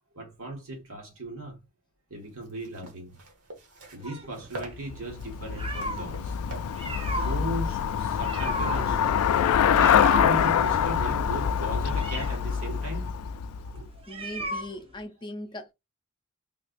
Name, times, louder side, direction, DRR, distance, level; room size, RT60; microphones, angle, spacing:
voice 1, 0.1-1.6 2.1-3.1 3.9-6.4 7.1-9.2 10.0-13.1 13.6-14.2, right 1 dB, 70° right, 1.6 m, -37 dB
sound 1, 2.2-8.3, right 1 dB, 85° right, 1.2 m, -46 dB
sound 2, 4.0-6.1 6.6-15.0, right 1 dB, 25° right, 0.8 m, -36 dB
Traffic noise roadway noise / Bicycle, 4.8-14.0, left 8 dB, 80° left, 0.3 m, -25 dB
voice 2, 14.1-15.7, left 1 dB, 20° left, 0.5 m, -39 dB
3.4 x 3.2 x 2.5 m
head